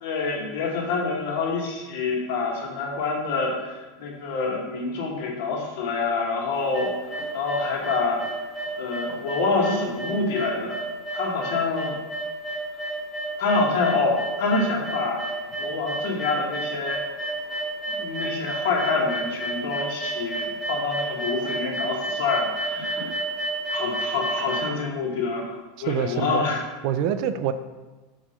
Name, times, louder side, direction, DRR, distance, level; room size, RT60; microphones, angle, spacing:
voice 1, 0.0-6.9 7.3-8.2 8.8-10.8 11.1-11.9 13.4-15.2 15.6-17.0 17.9-23.1 23.7-26.6, left 4 dB, 65° left, -1 dB, 1.5 m, -26 dB
sound 1, 6.5-24.6, right 2 dB, 5° left, 1.3 m, -30 dB
voice 2, 25.8-26.4 26.8-27.5, right 9 dB, 45° right, 11 dB, 0.3 m, -25 dB
4.7 x 4.3 x 5.0 m, 1.2 s
supercardioid pair, 160°, 0 cm